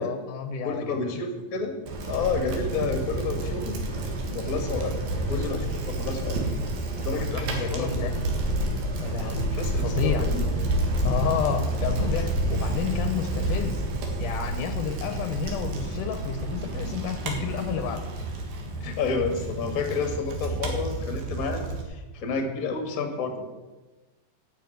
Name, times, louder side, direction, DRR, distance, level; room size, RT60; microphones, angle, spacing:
voice 1, 0.0-1.2 7.0-8.2 9.0-9.5 9.8-10.3 11.0-13.8 14.2-18.0, left 7 dB, 75° left, 7 dB, 2.2 m, -31 dB
voice 2, 0.6-1.7 2.1-3.8 4.3-5.0 5.3-6.4 7.0-7.9 9.2-10.4 18.8-23.5, left 4 dB, 40° left, 5 dB, 1.3 m, -30 dB
Bicycle, 1.9-21.8, right 1 dB, 85° right, 3.5 m, -29 dB
10.5 x 6.5 x 9.2 m, 1.2 s
omnidirectional pair, 4.0 m